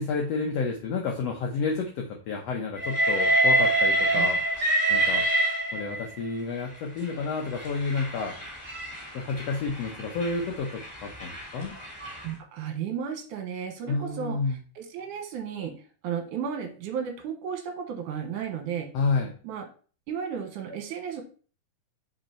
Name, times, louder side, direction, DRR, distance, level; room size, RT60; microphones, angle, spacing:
voice 1, 0.0-4.4 4.9-5.2 5.7-8.4 9.1-11.7 13.9-14.6 18.9-19.3, left 4 dB, 75° left, 1 dB, 1.5 m, -30 dB
Train, 2.8-6.2 7.0-12.3, right 1 dB, 10° left, 2.6 m, -26 dB
voice 2, 12.2-15.8 16.0-18.9 19.4-19.7 20.1-21.2, right 7 dB, 70° right, 5 dB, 2.5 m, -34 dB
5.3 x 5.1 x 4.3 m, 0.39 s
omnidirectional pair, 4.0 m